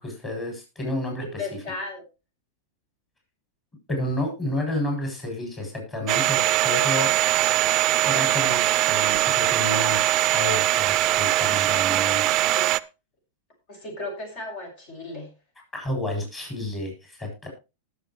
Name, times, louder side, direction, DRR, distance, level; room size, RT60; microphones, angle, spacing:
voice 1, 0.0-1.4 3.9-6.4 6.6-7.1 8.0-12.5 15.7-17.5, left 1 dB, 20° left, 1 dB, 7.6 m, -30 dB
voice 2, 1.2-2.0 13.7-15.3, left 3 dB, 50° left, 3 dB, 7.2 m, -35 dB
Domestic sounds home sounds, 6.1-12.8, right 14 dB, 40° right, 0.5 m, -21 dB
19.5 x 7.2 x 3.2 m, 0.28 s
hypercardioid pair, 120°, 0 cm